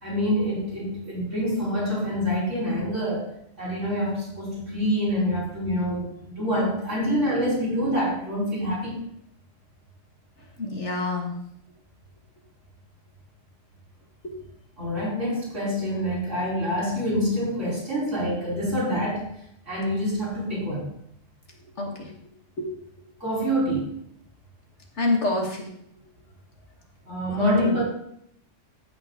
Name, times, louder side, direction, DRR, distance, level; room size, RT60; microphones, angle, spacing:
voice 1, 0.0-3.3 3.6-9.0 14.8-19.3 19.7-20.9 23.2-24.0 27.1-27.8, equal, 80° right, -4 dB, 4.8 m, -26 dB
voice 2, 10.6-11.3 14.2-14.3 21.8-21.9 22.6-22.7 25.0-25.7 27.4-27.7, left 2 dB, 70° left, 0 dB, 2.3 m, -26 dB
15.0 x 6.0 x 3.8 m, 0.72 s
omnidirectional pair, 1.3 m